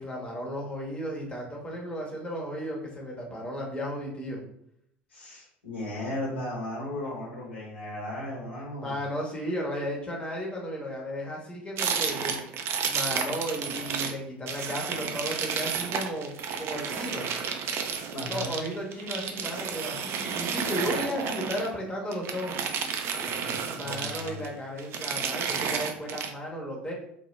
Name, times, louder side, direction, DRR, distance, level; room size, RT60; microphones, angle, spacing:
voice 1, 0.0-4.4 8.8-12.4 12.8-16.3 16.6-17.3 18.1-22.6 23.7-26.9, equal, 15° left, -2 dB, 0.8 m, -34 dB
voice 2, 5.1-9.0 18.1-18.5 23.2-24.4, left 1 dB, 80° left, -4 dB, 0.9 m, -36 dB
sound 1, 11.8-14.2 14.5-21.7 22.1-24.5 24.8-26.3, right 6 dB, 45° right, 0.3 m, -31 dB
2.0 x 2.0 x 3.1 m, 0.73 s
figure-of-eight pair, 70°, 6 cm